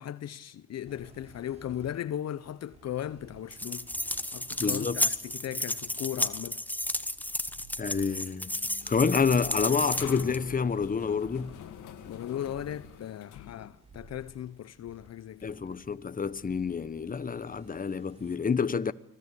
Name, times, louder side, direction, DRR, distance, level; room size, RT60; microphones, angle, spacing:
voice 1, 0.0-3.9 4.3-6.6 12.1-15.6, left 11 dB, 60° left, 0.9 m, -37 dB
sound 1, 0.8-18.4, right 3 dB, 20° right, 5.0 m, -55 dB
sound 2, 3.5-10.4, left 1 dB, 5° left, 1.2 m, -32 dB
voice 2, 4.6-5.0 7.8-8.5 8.9-11.5 15.4-18.9, left 5 dB, 30° left, 1.2 m, -28 dB
sound 3, 8.4-13.7, left 10 dB, 80° left, 2.0 m, -45 dB
25.0 x 18.0 x 8.4 m
cardioid pair, 90°, 30 cm